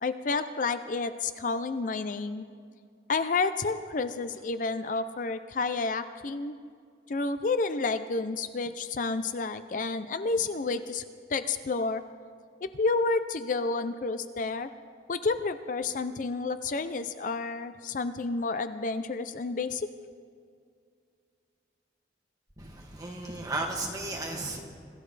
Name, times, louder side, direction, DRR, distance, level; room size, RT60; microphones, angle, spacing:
voice 1, 0.0-2.5 3.1-6.6 7.1-11.0 11.3-12.0 12.6-14.7 15.1-19.9, left 3 dB, 45° left, 11 dB, 0.4 m, -30 dB
voice 2, 22.6-24.6, right 2 dB, 20° right, -1 dB, 2.0 m, -34 dB
26.0 x 14.5 x 3.3 m, 2.2 s
head